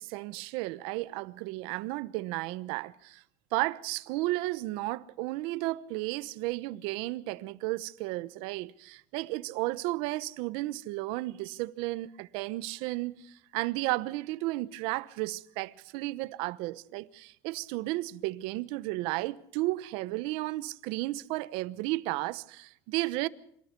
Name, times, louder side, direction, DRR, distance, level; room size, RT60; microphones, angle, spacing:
voice 1, 0.0-3.2 3.5-23.3, right 19 dB, 70° right, 1.0 m, -33 dB
27.0 x 19.5 x 5.3 m
cardioid pair, 145°, 9 cm